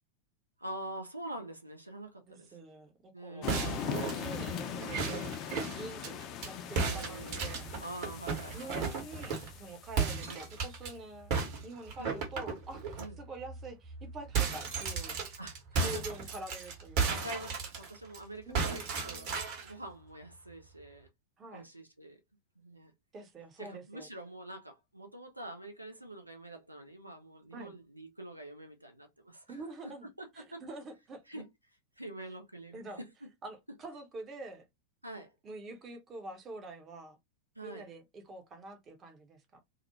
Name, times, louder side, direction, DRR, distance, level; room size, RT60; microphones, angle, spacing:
voice 1, 0.6-2.6 3.1-4.3 6.8-8.7 10.3-10.4 12.0-12.2 13.0-13.2 15.4-16.0 17.1-19.3 19.6-21.1 21.5-22.2 22.6-22.9 23.6-29.6 30.2-30.6 31.3-31.5 32.0-33.1 35.0-35.3 37.6-37.9, right 1 dB, 85° right, 0.5 m, -45 dB
voice 2, 2.3-5.1 5.7-7.7 8.5-15.2 15.8-17.2 18.5-18.9 21.4-21.7 23.1-24.1 27.5-27.7 29.5-30.1 30.3-31.4 32.7-33.0 33.4-34.6 35.4-37.2 37.6-39.6, right 2 dB, 25° right, 0.7 m, -46 dB
sound 1, 3.4-10.1, left 8 dB, 35° left, 0.4 m, -41 dB
sound 2, 3.5-6.5 6.8-9.6 10.0-10.9 11.3-13.1 13.5-13.6 13.9-18.2 18.5-19.7, right 5 dB, 45° right, 1.0 m, -34 dB
2.4 x 2.0 x 2.9 m
figure-of-eight pair, 90°, 0 cm